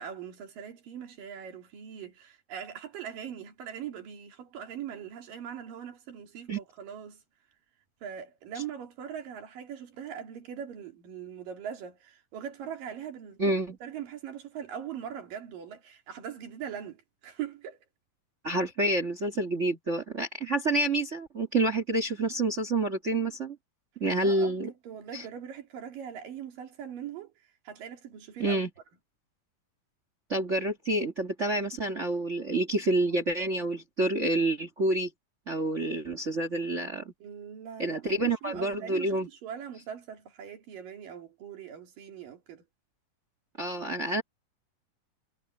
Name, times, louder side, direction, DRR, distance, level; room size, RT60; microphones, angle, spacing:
voice 1, 0.0-7.2 8.0-13.6 13.8-17.8 24.2-24.6 24.8-28.6 37.2-42.6, right 8 dB, 70° right, 4.4 m, -41 dB
voice 2, 13.4-13.7 18.4-23.6 24.0-24.7 25.1-25.2 28.4-28.7 30.3-35.1 35.5-37.1 37.8-39.3 43.6-44.2, right 2 dB, 40° right, 1.0 m, -28 dB
omnidirectional pair, 4.0 m